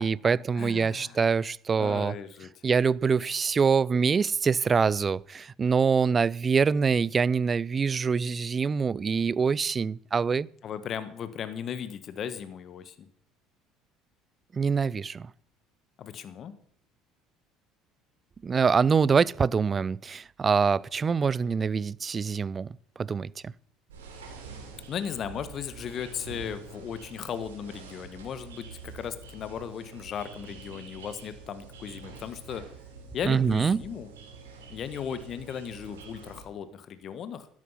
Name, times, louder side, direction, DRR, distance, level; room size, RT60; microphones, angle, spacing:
voice 1, 0.0-2.1 2.6-10.5 14.5-15.3 18.4-22.7 23.0-23.5 33.2-33.8, right 5 dB, 35° right, 0.4 m, -25 dB
voice 2, 0.5-1.2 1.8-2.5 10.6-13.1 16.0-16.5 24.9-32.6 33.1-34.1 34.7-37.5, left 8 dB, 50° left, 1.3 m, -36 dB
sound 1, 23.9-36.5, right 4 dB, 85° right, 3.2 m, -46 dB
12.5 x 11.0 x 5.6 m
hypercardioid pair, 65°, 0 cm